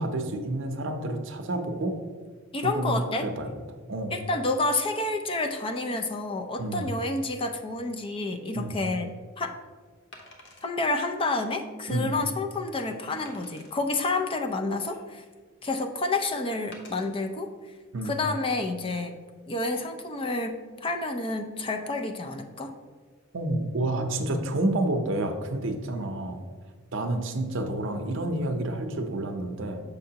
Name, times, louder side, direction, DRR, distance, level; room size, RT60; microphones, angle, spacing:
voice 1, 0.0-2.0 2.6-3.5 3.9-4.1 6.6-6.9 8.5-8.7 11.9-12.1 17.9-18.2 23.3-26.4 26.9-29.8, right 1 dB, 65° right, 6 dB, 0.6 m, -29 dB
voice 2, 2.5-3.3 4.1-9.1 9.4-9.5 10.6-15.2 15.6-17.5 18.0-19.2 19.5-22.7, left 2 dB, 25° left, 5 dB, 0.4 m, -29 dB
Wood, 8.5-8.7 10.1-10.7 11.3-11.4 11.9-12.0 13.2-13.7 14.5-15.3 16.7-17.1 17.8-18.0, left 2 dB, 60° left, 0.9 m, -49 dB
6.7 x 5.4 x 2.8 m, 1.5 s
head